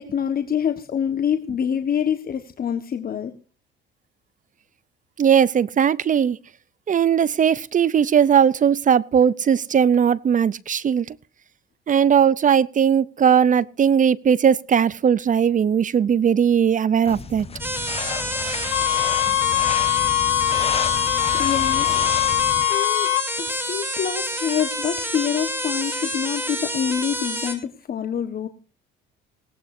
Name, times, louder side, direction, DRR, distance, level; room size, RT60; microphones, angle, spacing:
voice 1, 0.0-3.3 21.0-22.0 22.7-23.1 23.4-28.5, left 8 dB, 45° left, 1.4 m, -26 dB
voice 2, 5.2-6.4 6.9-11.2 11.9-17.5, right 8 dB, 40° right, 0.6 m, -18 dB
sound 1, 17.1-22.6, left 5 dB, 30° left, 1.4 m, -32 dB
sound 2, 17.6-27.5, equal, 10° right, 4.7 m, -28 dB
sound 3, 18.7-23.3, left 19 dB, 90° left, 0.7 m, -22 dB
19.5 x 17.5 x 2.7 m
supercardioid pair, 80°, 21 cm